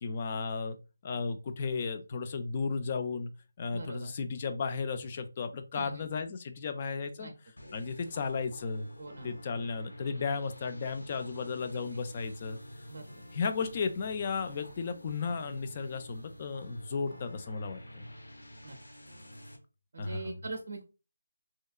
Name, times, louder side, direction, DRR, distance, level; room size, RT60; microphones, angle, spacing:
voice 1, 0.0-0.8 1.0-3.3 3.6-7.3 7.7-8.9 9.2-12.6 13.3-18.1 20.0-20.4, left 5 dB, 35° left, 0.3 m, -34 dB
voice 2, 3.7-4.1 5.7-6.1 7.2-7.3 9.0-9.3 12.9-13.2 18.6-18.8 19.9-20.9, right 3 dB, 55° right, 0.5 m, -42 dB
sound 1, 7.6-19.6, equal, 80° left, 0.7 m, -49 dB
2.8 x 2.2 x 2.3 m
figure-of-eight pair, 155°, 0 cm